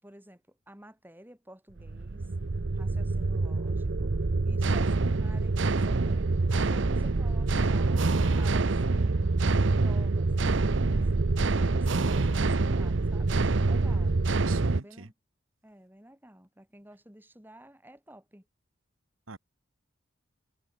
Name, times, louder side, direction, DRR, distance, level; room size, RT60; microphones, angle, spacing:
voice 1, 0.0-2.3 2.7-9.2 9.8-11.1 11.6-14.1 14.8-15.1 15.6-18.4, right 1 dB, 10° right, 4.9 m, -52 dB
sound 1, 1.8-14.8, right 3 dB, 65° right, 0.7 m, -26 dB
voice 2, 13.9-15.1 19.3-19.4, right 4 dB, 80° right, 1.5 m, -45 dB
head